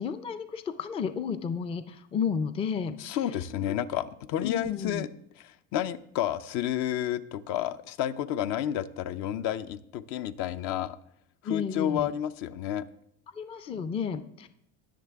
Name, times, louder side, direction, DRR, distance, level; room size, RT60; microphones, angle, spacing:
voice 1, 0.0-3.0 3.7-3.8 4.4-5.0 11.4-12.1 13.3-14.5, left 6 dB, 20° left, 11 dB, 0.4 m, -32 dB
voice 2, 3.0-5.1 5.4-11.0 11.4-12.9, left 11 dB, 60° left, 13 dB, 0.6 m, -31 dB
19.5 x 6.6 x 3.5 m, 0.74 s
cardioid pair, 145°, 32 cm